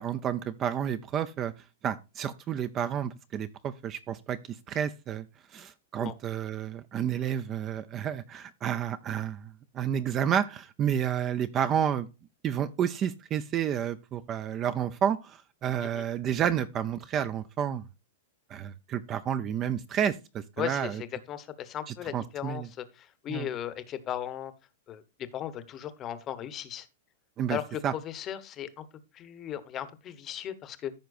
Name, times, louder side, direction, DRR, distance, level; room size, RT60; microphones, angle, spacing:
voice 1, 0.0-1.5 1.8-12.1 12.4-17.8 18.5-21.0 21.9-22.7 23.3-23.5 27.4-27.6 27.8-27.9, right 9 dB, 20° right, 0.4 m, -30 dB
voice 2, 20.6-24.5 24.9-26.9 27.5-28.9 29.1-30.9, left 10 dB, 20° left, 0.9 m, -37 dB
14.0 x 5.7 x 2.5 m
supercardioid pair, 170°, 0 cm